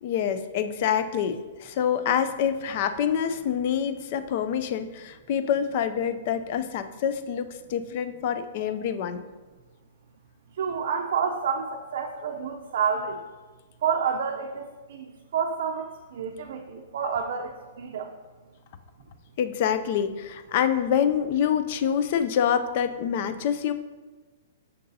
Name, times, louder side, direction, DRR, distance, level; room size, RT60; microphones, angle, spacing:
voice 1, 0.0-9.2 19.4-23.7, left 8 dB, 40° left, 11 dB, 0.4 m, -26 dB
voice 2, 10.6-13.2 13.8-15.1 15.3-18.1, right 6 dB, 55° right, 2 dB, 0.5 m, -29 dB
6.6 x 6.5 x 2.7 m, 1.3 s
hypercardioid pair, 170°, 0 cm